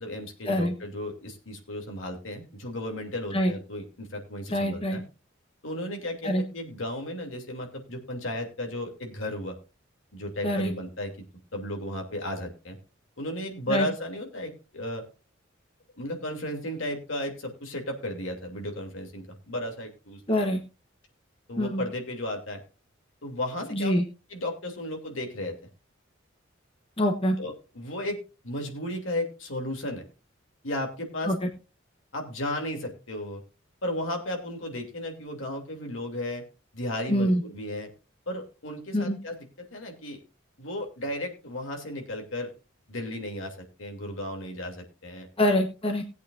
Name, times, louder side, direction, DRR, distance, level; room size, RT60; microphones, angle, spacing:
voice 1, 0.0-5.0 5.6-9.6 10.1-11.1 11.5-12.8 13.2-15.0 16.0-20.5 21.5-22.6 23.2-23.9 24.3-25.5 27.4-28.2 28.4-30.0 30.6-31.3 32.1-33.4 33.8-36.4 36.7-37.9 38.3-40.2 40.6-42.5 42.9-45.3, left 1 dB, 75° left, 2 dB, 2.8 m, -34 dB
voice 2, 4.5-5.0 6.2-6.4 10.4-10.7 13.7-13.9 20.3-20.6 21.6-21.8 23.7-24.0 27.0-27.4 31.3-31.4 37.1-37.4 38.9-39.2 45.4-46.0, equal, 30° left, 3 dB, 1.1 m, -25 dB
19.5 x 8.3 x 2.5 m, 0.32 s
head